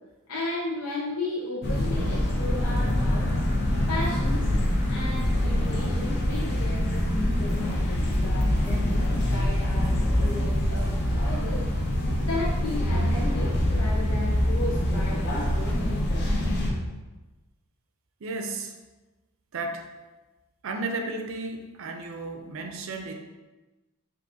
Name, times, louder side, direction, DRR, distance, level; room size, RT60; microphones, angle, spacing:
voice 1, 0.3-3.3 3.9-4.5 4.9-11.6 12.2-16.3 16.7-16.8, left 2 dB, 85° left, -6 dB, 0.9 m, -35 dB
sound 1, 1.6-16.7, left 1 dB, 50° left, 0.7 m, -25 dB
voice 2, 18.2-18.8 19.5-19.9 20.6-23.1, right 3 dB, 60° right, 4 dB, 0.5 m, -33 dB
5.7 x 2.6 x 2.7 m, 1.1 s
head